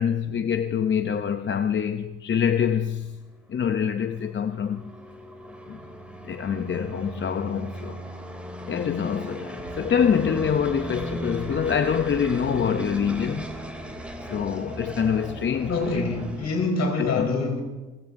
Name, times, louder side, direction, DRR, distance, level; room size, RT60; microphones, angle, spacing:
voice 1, 0.0-3.2 3.5-4.9 5.7-5.8 6.2-8.0 8.7-13.5 14.3-16.0 17.0-17.3, left 7 dB, 40° left, 0.7 m, -25 dB
sound 1, 3.3-16.7, equal, 5° right, 2.8 m, -37 dB
sound 2, 9.6-16.4, right 4 dB, 75° right, 6.5 m, -42 dB
voice 2, 15.7-17.6, left 3 dB, 60° left, 4.2 m, -25 dB
29.5 x 16.0 x 2.7 m
cardioid pair, 90°, 30 cm